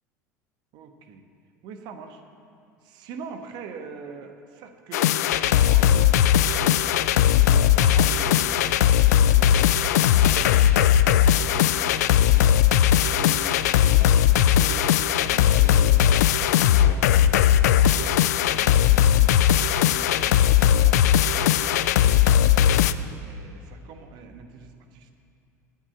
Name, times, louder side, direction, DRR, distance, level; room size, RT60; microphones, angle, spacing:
voice 1, 0.7-1.2 1.6-2.2 2.8-6.9 7.3-10.6 10.9-12.5 13.1-19.3 19.7-20.4 20.6-20.9 21.3-22.7 23.2-25.1, right 5 dB, 50° right, 6 dB, 1.2 m, -43 dB
sound 1, 4.9-22.9, left 10 dB, 65° left, 0.4 m, -19 dB
9.2 x 8.2 x 8.7 m, 2.6 s
figure-of-eight pair, 75°, 10 cm